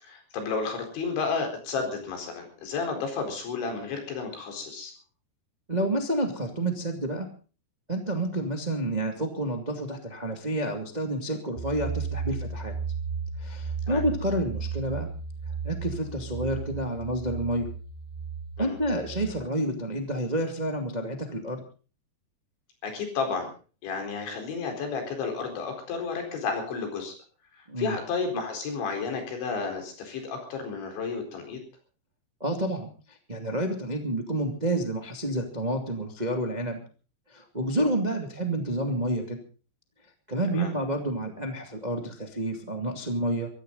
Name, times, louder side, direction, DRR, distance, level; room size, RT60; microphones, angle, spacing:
voice 1, 0.0-4.9 13.9-14.0 18.6-18.8 22.8-23.5 23.8-27.1 27.6-31.6 40.6-40.7, left 4 dB, 90° left, 4 dB, 6.7 m, -32 dB
voice 2, 5.7-7.3 7.9-12.7 13.4-15.1 15.6-17.7 18.6-21.6 27.7-28.0 32.4-36.8 37.3-39.4 40.3-43.5, right 1 dB, 25° right, 4 dB, 0.9 m, -29 dB
sound 1, 11.6-19.3, right 5 dB, 70° right, 3.4 m, -34 dB
24.0 x 14.5 x 4.0 m, 0.37 s
omnidirectional pair, 5.1 m